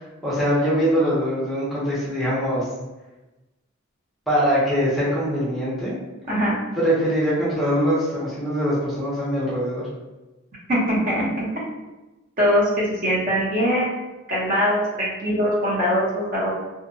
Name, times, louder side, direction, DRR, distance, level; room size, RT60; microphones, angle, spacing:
voice 1, 0.2-2.7 4.3-6.0 6.8-9.8, equal, ahead, -9 dB, 0.6 m, -22 dB
voice 2, 10.7-11.2 12.4-16.5, equal, 45° right, -5 dB, 0.7 m, -22 dB
2.7 x 2.1 x 2.5 m, 1.1 s
head